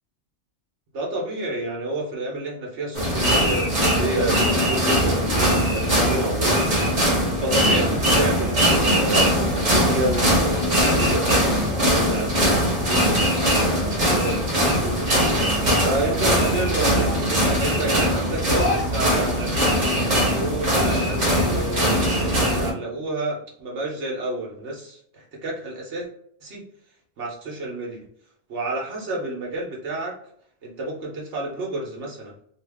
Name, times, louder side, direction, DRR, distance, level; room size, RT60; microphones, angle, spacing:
voice 1, 0.9-15.1 15.8-26.1 26.4-26.6 27.2-28.0 28.5-30.1 30.6-32.3, right 2 dB, 75° right, -2 dB, 1.1 m, -30 dB
sound 1, 2.9-22.7, equal, 45° right, 1.0 m, -21 dB
2.8 x 2.4 x 3.3 m, 0.65 s
omnidirectional pair, 1.2 m